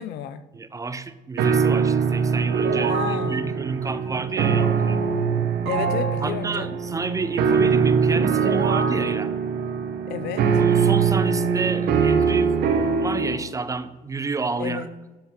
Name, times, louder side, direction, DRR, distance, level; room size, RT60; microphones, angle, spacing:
voice 1, 0.0-0.4 2.9-3.5 5.7-6.8 10.1-10.5 14.6-14.9, left 9 dB, 75° left, 13 dB, 0.6 m, -32 dB
voice 2, 0.5-5.0 6.2-9.3 10.5-12.6 13.0-14.8, right 4 dB, 20° right, 13 dB, 0.4 m, -30 dB
sound 1, 1.4-13.4, right 6 dB, 70° right, 0.9 m, -22 dB
12.0 x 4.1 x 4.3 m, 1.2 s
cardioid pair, 110°, 17 cm